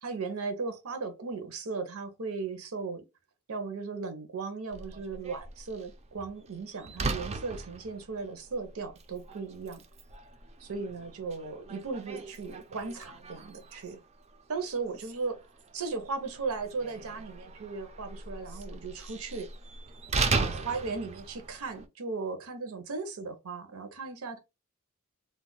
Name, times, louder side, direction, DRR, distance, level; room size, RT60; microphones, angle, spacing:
voice 1, 0.0-3.0 3.5-9.8 10.6-14.0 14.5-15.4 15.7-19.5 20.3-24.4, right 4 dB, 75° right, 0.7 m, -37 dB
Slam, 4.7-21.9, right 3 dB, 30° right, 0.4 m, -38 dB
2.4 x 2.1 x 3.8 m
head